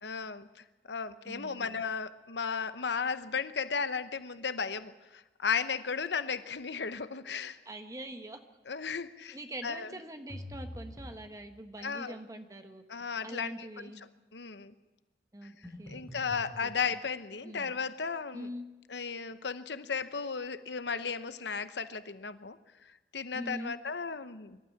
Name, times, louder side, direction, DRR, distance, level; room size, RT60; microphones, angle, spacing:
voice 1, 0.0-7.6 8.7-9.4 9.6-9.9 11.8-12.2 12.9-13.9 14.3-14.7 15.9-18.5 18.9-22.6 23.1-24.6, left 5 dB, 75° left, 13 dB, 0.9 m, -35 dB
voice 2, 1.2-1.7 7.6-8.4 9.3-14.0 15.3-16.0 16.6-16.7 17.4-17.7 18.3-18.7 23.3-23.8, right 1 dB, 20° right, 7 dB, 1.3 m, -43 dB
sound 1, 10.3-11.2 15.6-16.5, left 1 dB, 5° left, 6.9 m, -44 dB
24.5 x 12.5 x 8.7 m, 1.1 s
head